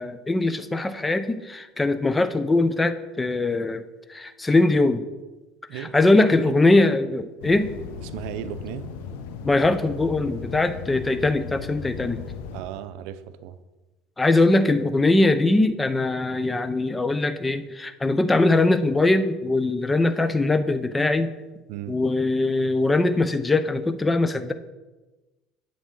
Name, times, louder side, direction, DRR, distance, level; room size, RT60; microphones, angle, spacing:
voice 1, 0.0-3.8 4.1-5.0 5.7-7.7 9.4-12.2 14.2-21.3 21.9-24.5, left 2 dB, 15° left, 11 dB, 0.6 m, -21 dB
sound 1, 7.4-12.6, left 6 dB, 90° left, 1.0 m, -37 dB
voice 2, 8.0-8.9 12.5-13.6 21.7-22.0, right 10 dB, 75° right, 12 dB, 0.6 m, -35 dB
9.9 x 8.5 x 3.8 m, 1.1 s
supercardioid pair, 115°, 0 cm